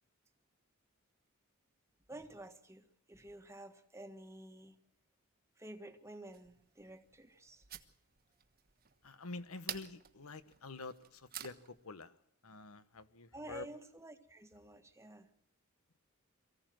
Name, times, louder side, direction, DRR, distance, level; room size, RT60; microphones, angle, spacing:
voice 1, 2.1-4.8 5.6-7.6 13.3-15.3, right 1 dB, 15° right, 7 dB, 1.5 m, -51 dB
sound 1, 6.3-11.8, right 9 dB, 45° right, 1.3 m, -51 dB
voice 2, 9.0-12.1 12.4-13.7, left 3 dB, 75° left, 13 dB, 1.3 m, -48 dB
23.0 x 15.5 x 7.7 m, 0.74 s
head